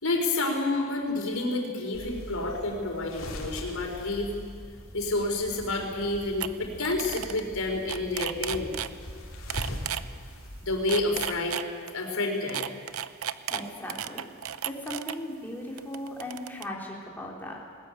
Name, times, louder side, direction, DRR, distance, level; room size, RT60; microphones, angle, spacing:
voice 1, 0.0-4.3 4.9-8.8 10.6-11.6 11.9-12.7, left 2 dB, 90° left, 2 dB, 4.7 m, -29 dB
sound 1, 1.9-11.2, equal, 70° left, 4.0 m, -41 dB
sound 2, 6.0-6.1 6.4-6.5 6.8-7.4 7.7-8.9 9.5-10.0 10.7-11.9 12.5-15.2 15.8-16.6, right 10 dB, 90° right, 0.7 m, -33 dB
voice 2, 13.5-14.3 14.6-17.6, left 1 dB, 10° left, -3 dB, 3.8 m, -37 dB
20.5 x 20.0 x 9.2 m, 2.2 s
head